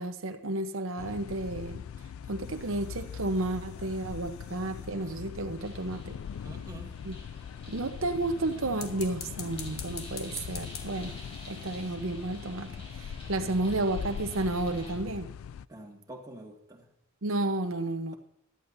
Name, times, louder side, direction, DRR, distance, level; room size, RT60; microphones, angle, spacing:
voice 1, 0.0-1.8 2.3-6.2 7.0-7.1 7.7-11.2 11.5-15.3 17.2-18.1, right 2 dB, 80° right, 7 dB, 0.8 m, -32 dB
sound 1, 1.0-15.7, left 7 dB, 85° left, 0.3 m, -41 dB
sound 2, 2.4-5.3 8.7-12.0, left 6 dB, 50° left, 1.5 m, -47 dB
sound 3, 5.6-14.9, left 1 dB, 30° left, 4.2 m, -51 dB
voice 2, 6.4-6.9 15.7-16.9, right 1 dB, 15° right, 0 dB, 2.0 m, -46 dB
17.0 x 11.5 x 2.7 m, 0.76 s
head